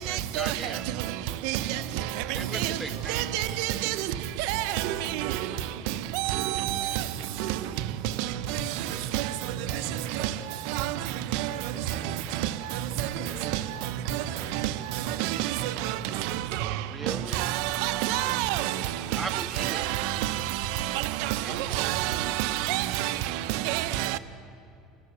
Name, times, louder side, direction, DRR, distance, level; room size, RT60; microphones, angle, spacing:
voice 1, 0.0-0.8 2.3-3.1 16.9-17.5 19.2-19.8 21.4-21.8, right 2 dB, 5° right, 0.6 m, -38 dB
voice 2, 1.6-3.2 4.5-10.6 11.5-12.5 13.1-15.3 15.7-16.0 17.9-19.1, left 1 dB, 45° left, 4.3 m, -50 dB
voice 3, 3.1-3.9 4.5-4.6 6.3-6.4 9.1-9.2 17.4-17.5 17.8-18.7 19.6-19.7 21.8-22.8 23.7-24.1, right 14 dB, 70° right, 0.9 m, -27 dB
30.0 x 14.0 x 6.9 m
cardioid pair, 155°, 0 cm